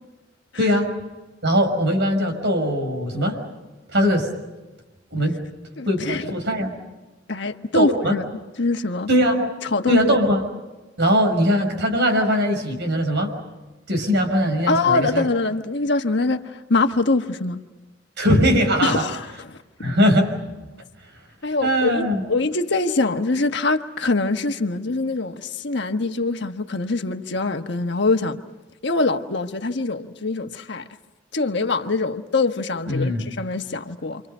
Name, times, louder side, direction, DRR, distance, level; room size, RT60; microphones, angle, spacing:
voice 1, 0.6-0.9 1.4-3.4 3.9-4.3 5.1-5.4 5.9-6.8 7.7-8.1 9.1-9.5 9.9-10.4 11.0-13.3 13.9-15.2 18.2-19.0 19.8-20.3 21.6-22.2 32.9-33.2, equal, 65° right, 5.9 m, -20 dB
voice 2, 5.8-6.3 7.3-8.2 8.6-9.1 9.7-10.1 14.7-17.6 18.8-19.6 21.4-28.4 28.8-30.9 31.3-34.2, left 3 dB, 65° left, 1.4 m, -23 dB
30.0 x 26.0 x 5.6 m
head